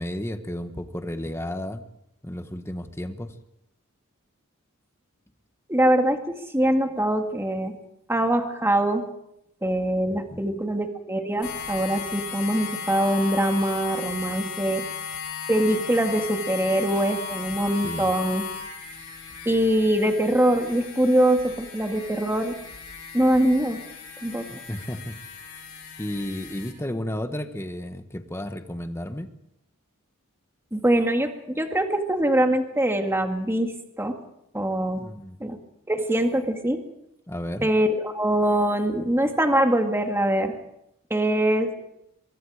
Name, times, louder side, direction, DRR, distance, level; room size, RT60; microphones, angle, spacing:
voice 1, 0.0-1.8 2.2-3.3 10.1-10.5 17.8-18.1 24.5-25.2 26.0-29.3 34.9-35.4 37.3-37.7, left 1 dB, 10° left, 8 dB, 1.4 m, -33 dB
voice 2, 5.7-7.7 8.1-9.1 9.6-14.8 15.5-18.4 19.5-22.5 23.1-23.8 24.2-24.5 30.7-34.2 34.5-35.0 35.4-35.6 35.9-36.8 37.6-40.5 41.1-41.7, right 1 dB, 10° right, 4 dB, 2.1 m, -23 dB
sound 1, 11.4-26.7, left 6 dB, 80° left, 6.5 m, -36 dB
23.5 x 23.0 x 5.0 m, 0.80 s
head